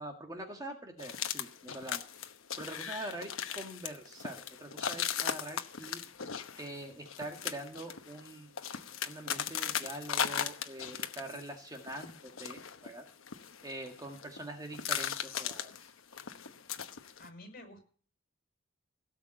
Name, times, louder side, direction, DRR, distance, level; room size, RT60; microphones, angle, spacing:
voice 1, 0.0-2.3 2.6-6.0 6.6-8.6 9.0-13.1 13.6-15.9, right 1 dB, 20° right, 3 dB, 1.8 m, -44 dB
sound 1, 1.0-11.5 11.7-14.4 14.7-17.3, left 8 dB, 85° left, 1.1 m, -38 dB
voice 2, 17.2-17.8, left 1 dB, 45° left, 4 dB, 6.6 m, -50 dB
17.5 x 7.3 x 7.8 m, 0.43 s
head